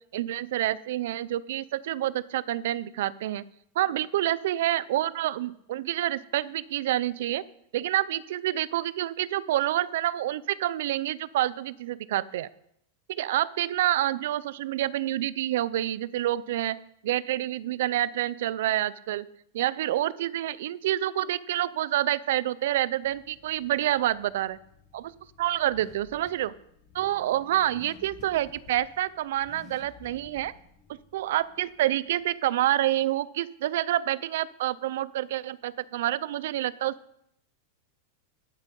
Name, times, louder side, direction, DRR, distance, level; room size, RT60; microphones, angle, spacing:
voice 1, 0.1-3.4 3.8-7.4 7.7-12.5 13.1-16.8 17.0-19.3 19.5-24.6 24.9-25.1 25.4-26.5 26.9-30.5 31.1-36.9, right 13 dB, 65° right, 19 dB, 0.5 m, -28 dB
Car / Accelerating revving vroom, 23.0-32.2, left 6 dB, 30° left, 1.5 m, -54 dB
11.5 x 8.4 x 5.4 m, 0.74 s
supercardioid pair, 160°, 0 cm